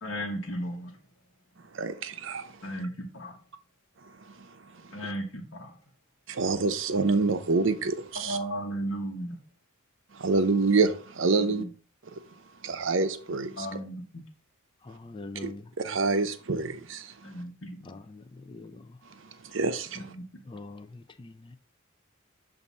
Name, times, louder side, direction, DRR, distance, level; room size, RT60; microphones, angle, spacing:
voice 1, 0.0-0.9 2.6-3.3 4.9-5.7 8.1-9.4 11.3-11.7 13.3-14.2 17.2-17.9 19.9-20.2, right 1 dB, 65° left, 1.1 m, -35 dB
voice 2, 1.7-2.5 6.3-8.4 10.1-11.6 12.6-13.7 15.4-17.1 19.5-20.1, right 3 dB, 65° right, 0.6 m, -27 dB
voice 3, 14.8-15.6 17.8-19.0 20.5-21.6, left 2 dB, 25° left, 0.4 m, -44 dB
7.2 x 2.6 x 5.3 m
head